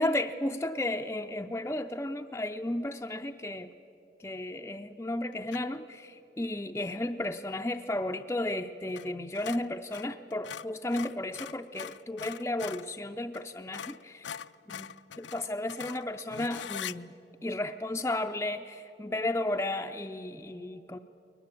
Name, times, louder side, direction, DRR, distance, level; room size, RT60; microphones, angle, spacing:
voice 1, 0.0-3.7 4.2-14.3 14.7-14.9 15.2-17.1 17.4-21.0, left 1 dB, 15° left, 4 dB, 0.4 m, -33 dB
sound 1, 5.5-5.8 8.9-9.1 9.3-12.9 13.3-13.4 13.7-17.0, left 9 dB, 75° left, 0.4 m, -42 dB
21.5 x 20.0 x 8.3 m, 2.9 s
head